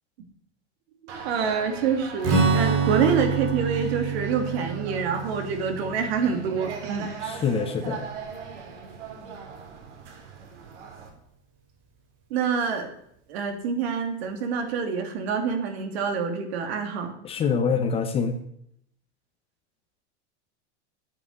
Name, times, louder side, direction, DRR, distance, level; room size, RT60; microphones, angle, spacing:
voice 1, 1.0-7.1 12.3-12.9 13.3-17.1, right 6 dB, 65° right, 6 dB, 3.0 m, -26 dB
sound 1, 1.1-11.1, right 6 dB, 80° right, 4.1 m, -40 dB
Strum, 2.2-7.9, right 5 dB, 50° right, 4.6 m, -27 dB
voice 2, 7.2-8.0 17.2-18.4, left 6 dB, 15° left, 7 dB, 0.8 m, -25 dB
9.2 x 8.8 x 9.7 m, 0.73 s
supercardioid pair, 170°, 34 cm